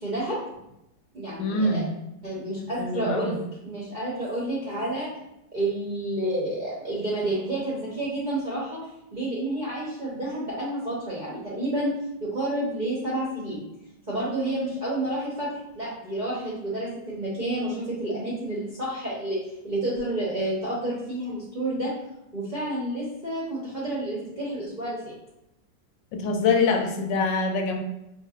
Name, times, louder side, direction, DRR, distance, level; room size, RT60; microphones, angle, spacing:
voice 1, 0.0-0.4 1.1-1.8 2.2-5.1 5.5-8.8 9.1-11.9 12.2-13.6 14.1-19.4 19.6-21.9 22.3-25.1, right 1 dB, 40° right, -7 dB, 0.6 m, -30 dB
voice 2, 1.4-1.9 2.8-3.3 26.1-27.8, left 3 dB, 85° left, 4 dB, 1.3 m, -24 dB
4.5 x 2.7 x 2.3 m, 0.86 s
omnidirectional pair, 1.9 m